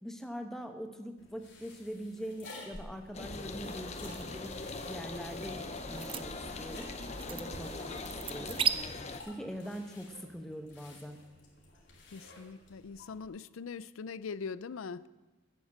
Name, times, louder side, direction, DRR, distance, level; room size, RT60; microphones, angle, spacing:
voice 1, 0.0-4.5 4.9-6.9 7.3-8.6 9.3-11.2, equal, ahead, 0.9 m, -43 dB
sound 1, 1.2-13.3, left 2 dB, 55° left, 3.0 m, -53 dB
sound 2, 3.1-9.2, left 3 dB, 35° left, 0.8 m, -41 dB
sound 3, 3.6-8.7, right 8 dB, 25° right, 0.4 m, -38 dB
voice 2, 12.1-15.1, left 5 dB, 85° left, 0.5 m, -42 dB
10.5 x 8.0 x 8.7 m
head